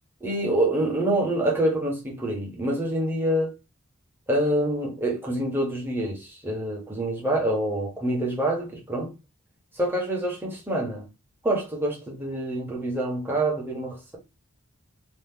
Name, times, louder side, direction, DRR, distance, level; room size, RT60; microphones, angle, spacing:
voice 1, 0.2-3.5 4.3-9.1 9.7-11.1 11.4-14.2, right 1 dB, 10° right, 1.2 m, -26 dB
3.1 x 2.5 x 3.7 m
head